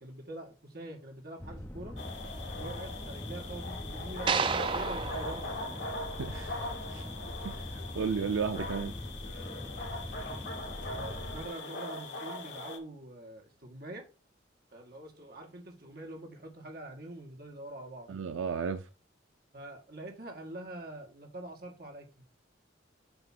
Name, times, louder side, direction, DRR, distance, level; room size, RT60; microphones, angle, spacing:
voice 1, 0.0-2.0 2.5-5.4 10.9-14.0 14.7-18.1 19.5-22.1, right 1 dB, 50° right, 1.7 m, -44 dB
sound 1, 1.4-11.5, left 1 dB, 10° left, 0.6 m, -42 dB
sound 2, 2.0-12.8, left 2 dB, 65° left, 1.7 m, -41 dB
sound 3, 4.3-6.6, right 5 dB, 25° right, 0.3 m, -33 dB
voice 2, 6.2-6.6 6.9-7.0 7.4-8.9 18.1-18.9, right 5 dB, 85° right, 0.5 m, -33 dB
7.9 x 3.0 x 5.9 m
head